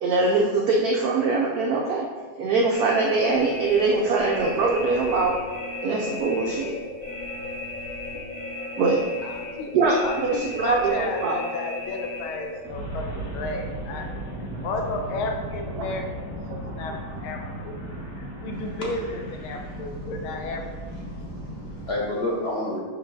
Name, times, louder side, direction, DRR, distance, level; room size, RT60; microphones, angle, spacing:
voice 1, 0.0-2.1 2.4-5.4 5.8-6.8 8.8-9.0 9.7-11.4 14.5-14.7 15.8-16.0 16.6-17.0 18.0-18.1 21.5-21.6, right 3 dB, 85° right, 0 dB, 0.8 m, -23 dB
sound 1, 2.7-21.9, left 1 dB, 40° left, 1.8 m, -35 dB
voice 2, 9.2-9.7 10.0-14.1 14.6-16.0 16.6-16.9 17.2-17.4 17.6-20.6, left 3 dB, 85° left, 2 dB, 1.5 m, -33 dB
voice 3, 19.5-20.1 21.0-22.8, left 1 dB, 65° left, -4 dB, 0.6 m, -31 dB
5.7 x 4.7 x 3.8 m, 1.4 s
omnidirectional pair, 2.3 m